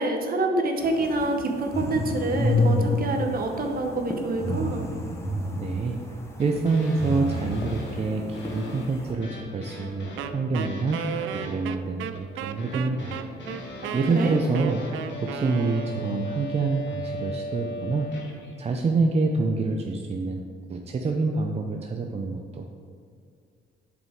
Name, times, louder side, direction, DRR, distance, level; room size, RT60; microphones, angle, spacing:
voice 1, 0.0-4.8 14.1-14.4, right 2 dB, 50° right, 4 dB, 1.0 m, -26 dB
sound 1, 0.8-9.1, left 1 dB, 15° left, 1.1 m, -30 dB
voice 2, 5.5-11.0 11.3-13.2 13.5-14.8 15.2-18.1 18.6-20.4 20.7-22.7, right 3 dB, 30° right, 2 dB, 0.5 m, -27 dB
sound 2, 6.4-18.6, left 1 dB, 65° left, 1.4 m, -39 dB
Wind instrument woodwind instrument, 10.2-16.2, right 9 dB, 85° right, 0.4 m, -35 dB
7.7 x 5.0 x 3.6 m, 2.2 s
cardioid pair, 90°, 20 cm